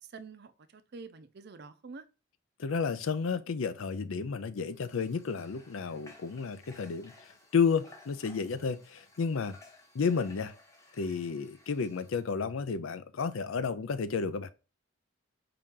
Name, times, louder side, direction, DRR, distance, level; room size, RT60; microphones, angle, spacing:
voice 1, 0.0-2.1, right 4 dB, 55° right, 0.5 m, -47 dB
voice 2, 2.6-7.1 7.5-9.6 9.9-10.5 11.0-14.5, left 5 dB, 85° left, 0.5 m, -31 dB
Water / Water tap faucet, 4.7-12.3, left 2 dB, 15° left, 0.9 m, -57 dB
5.0 x 2.9 x 3.6 m
head